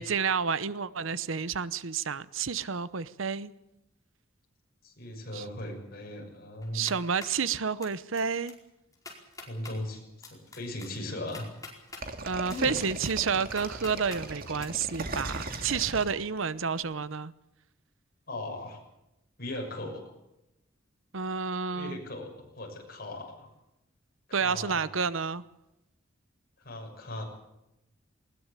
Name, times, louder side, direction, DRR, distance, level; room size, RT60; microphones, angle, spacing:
voice 1, 0.0-3.5 5.3-5.4 6.7-8.5 12.2-17.3 21.1-22.0 24.3-25.4, right 6 dB, 75° right, 16 dB, 0.9 m, -30 dB
voice 2, 4.8-6.9 9.5-11.4 12.5-12.8 18.3-18.8 19.4-20.0 21.7-23.5 24.3-24.8 26.6-27.2, left 1 dB, 50° left, 2 dB, 6.7 m, -38 dB
sound 1, 6.6-7.4 7.8-8.2 8.5-8.6 8.9-9.8 10.2-12.0 12.5-14.2 14.6-14.7, left 3 dB, 15° left, 4.8 m, -45 dB
sound 2, 12.0-16.8, right 2 dB, 45° right, 2.4 m, -38 dB
20.0 x 20.0 x 8.4 m, 0.90 s
head